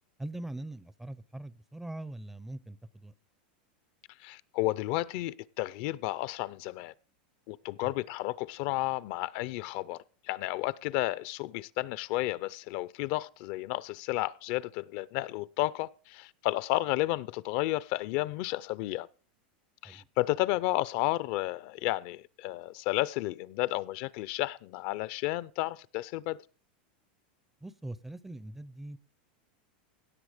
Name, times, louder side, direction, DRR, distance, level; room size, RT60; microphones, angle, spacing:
voice 1, 0.2-3.1 7.8-7.9 19.8-20.1 27.6-29.0, right 1 dB, 5° right, 0.5 m, -42 dB
voice 2, 4.2-6.9 7.5-10.0 10.3-19.1 19.8-26.4, left 18 dB, 50° left, 0.5 m, -32 dB
17.0 x 7.0 x 4.9 m
supercardioid pair, 150°, 5 cm